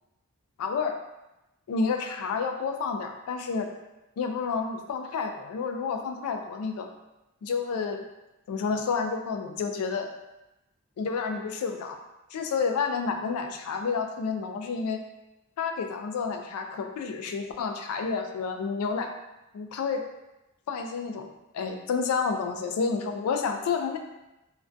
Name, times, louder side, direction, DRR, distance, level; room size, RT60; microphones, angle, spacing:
voice 1, 0.6-1.0 1.7-3.7 4.2-6.9 7.4-8.0 8.5-10.1 11.0-12.0 12.3-15.0 15.6-19.1 19.5-20.0 20.7-21.3 21.5-24.0, left 5 dB, 80° left, 5 dB, 0.3 m, -30 dB
2.3 x 2.2 x 2.5 m, 0.96 s
head